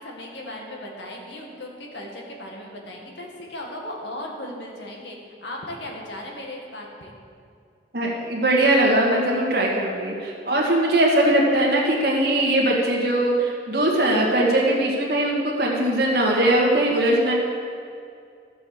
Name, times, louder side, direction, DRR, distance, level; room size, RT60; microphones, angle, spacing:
voice 1, 0.0-7.1, left 1 dB, 75° left, 0 dB, 2.0 m, -37 dB
voice 2, 7.9-17.3, right 1 dB, 60° right, -2 dB, 1.8 m, -20 dB
13.5 x 6.8 x 6.2 m, 2.4 s
head